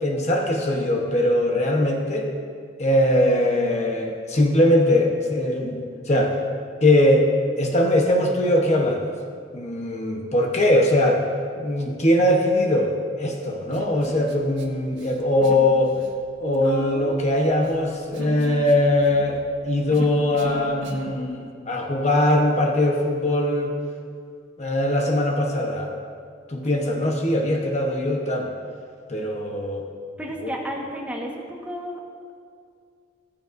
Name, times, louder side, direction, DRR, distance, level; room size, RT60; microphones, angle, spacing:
voice 1, 0.0-2.3 2.8-6.4 6.8-7.3 7.6-9.1 9.5-11.2 11.6-15.9 16.4-23.7 24.6-26.0 26.5-28.5 29.1-29.9 30.4-30.6, left 1 dB, 40° left, 1 dB, 1.1 m, -21 dB
Human voice, 13.7-14.6 14.9-15.7 15.9-21.1, right 2 dB, 90° right, 1.2 m, -36 dB
voice 2, 30.2-32.0, equal, 10° right, -2 dB, 1.4 m, -32 dB
15.5 x 14.5 x 2.7 m, 2.2 s
head